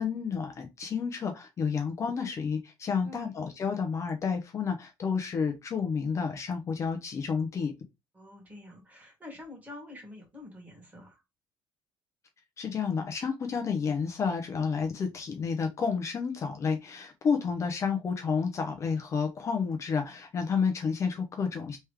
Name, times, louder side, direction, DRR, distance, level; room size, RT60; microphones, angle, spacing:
voice 1, 0.0-7.7 12.6-21.8, left 5 dB, 35° left, 0.8 m, -30 dB
voice 2, 3.0-3.4 8.1-11.2, left 2 dB, 20° right, 1.9 m, -47 dB
3.5 x 3.2 x 3.2 m
cardioid pair, 130°, 8 cm